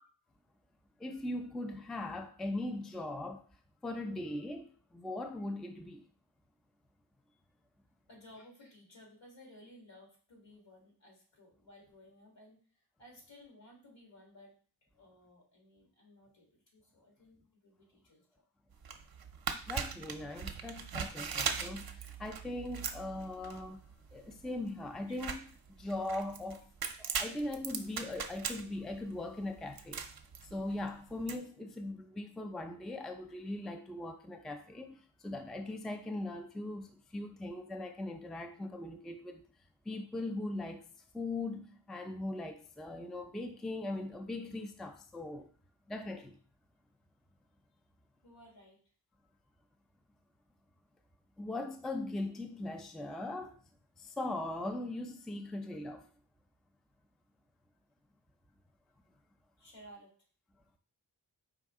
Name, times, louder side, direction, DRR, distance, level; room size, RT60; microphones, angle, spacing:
voice 1, 1.0-3.4 3.8-6.0 19.7-23.8 24.1-25.4 25.7-26.6 27.0-30.1 30.4-39.4 39.9-40.9 41.1-45.5 45.9-46.4 51.4-53.6 54.0-56.1, left 2 dB, ahead, 0.4 m, -40 dB
voice 2, 8.1-14.5 14.8-18.4 48.2-48.8 59.6-60.1, left 1 dB, 70° left, 1.9 m, -57 dB
sound 1, 18.7-31.4, right 6 dB, 50° right, 0.6 m, -40 dB
4.8 x 2.7 x 3.5 m
cardioid pair, 55°, 46 cm